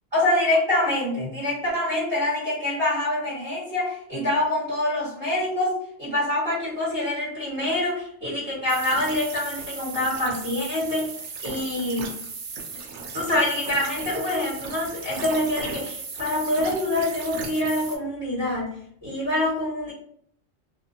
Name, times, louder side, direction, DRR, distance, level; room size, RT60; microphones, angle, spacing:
voice 1, 0.1-5.7 6.0-11.1 11.4-12.1 13.1-18.7 19.0-19.9, left 1 dB, 20° right, -10 dB, 1.4 m, -25 dB
sound 1, 8.7-18.0, right 4 dB, 85° right, 0.9 m, -36 dB
2.4 x 2.4 x 2.7 m, 0.65 s
omnidirectional pair, 1.2 m